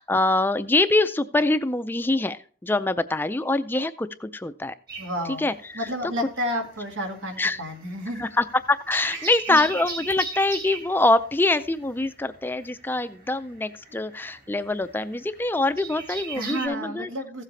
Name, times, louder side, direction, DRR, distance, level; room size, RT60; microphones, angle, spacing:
voice 1, 0.0-4.7 5.3-5.9 7.4-7.6 8.2-17.1, left 2 dB, 10° left, 12 dB, 0.3 m, -24 dB
sound 1, 4.9-6.3 6.6-16.7, right 4 dB, 50° right, 3.2 m, -38 dB
voice 2, 5.0-5.5 5.7-8.2 9.1-9.6 16.3-17.4, equal, 85° right, 3 dB, 2.0 m, -31 dB
15.5 x 7.5 x 3.2 m, 0.43 s
head